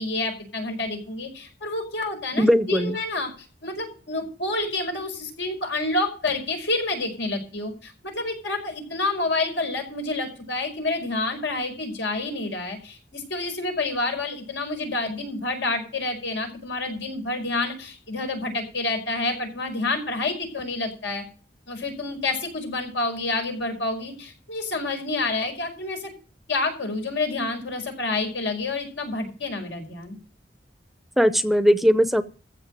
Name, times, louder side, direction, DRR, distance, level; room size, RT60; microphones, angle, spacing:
voice 1, 0.0-3.3 3.6-21.2 21.7-26.1 26.5-30.2, left 2 dB, 85° left, 3 dB, 5.3 m, -28 dB
voice 2, 2.3-3.0 31.2-32.2, equal, ahead, 12 dB, 0.6 m, -19 dB
15.0 x 5.6 x 8.9 m, 0.39 s
head